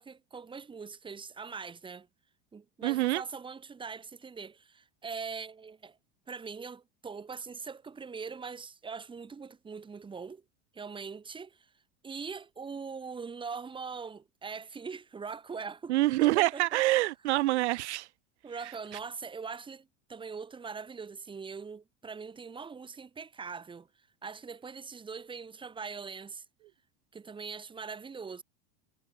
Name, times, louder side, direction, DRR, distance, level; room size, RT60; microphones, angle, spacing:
voice 1, 0.0-2.1 2.5-6.0 6.3-10.4 10.7-11.7 12.0-15.9 16.2-16.8 18.4-23.9 24.2-26.4 27.1-28.4, right 5 dB, 15° right, 5.0 m, -42 dB
voice 2, 2.8-3.2 15.9-18.1, right 17 dB, 85° right, 5.2 m, -26 dB
supercardioid pair, 150°, 33 cm